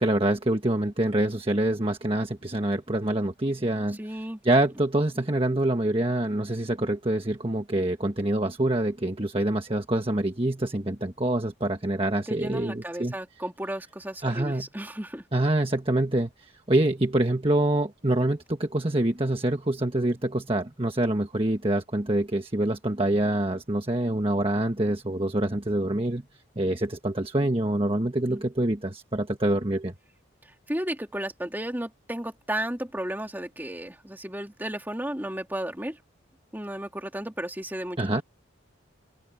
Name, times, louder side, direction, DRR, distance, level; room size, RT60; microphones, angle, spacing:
voice 1, 0.0-13.1 14.2-14.7 15.3-26.2 26.6-29.9 38.0-38.2, right 1 dB, 25° right, 1.4 m, -26 dB
voice 2, 3.9-4.4 12.3-15.2 28.3-28.4 30.7-36.0 36.5-38.2, right 1 dB, 10° right, 2.6 m, -34 dB
open air
head